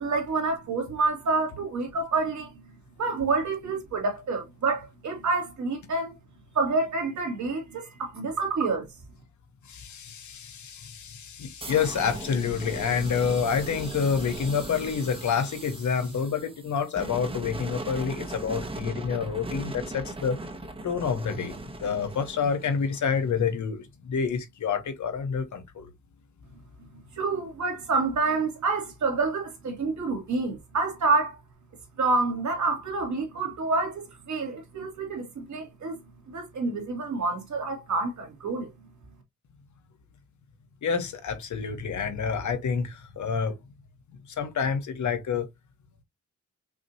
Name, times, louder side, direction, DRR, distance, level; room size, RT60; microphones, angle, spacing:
voice 1, 0.0-2.5 3.0-6.1 6.5-8.9 27.1-31.4 32.0-36.0 36.3-38.7, right 3 dB, 65° right, 2.2 m, -28 dB
voice 2, 9.7-20.4 20.8-21.6 21.8-25.9 40.8-43.6 44.4-45.5, left 6 dB, 70° left, 1.0 m, -28 dB
sound 1, 11.6-23.4, right 2 dB, 15° right, 0.7 m, -39 dB
6.0 x 2.8 x 2.7 m
wide cardioid pair, 130°, 31 cm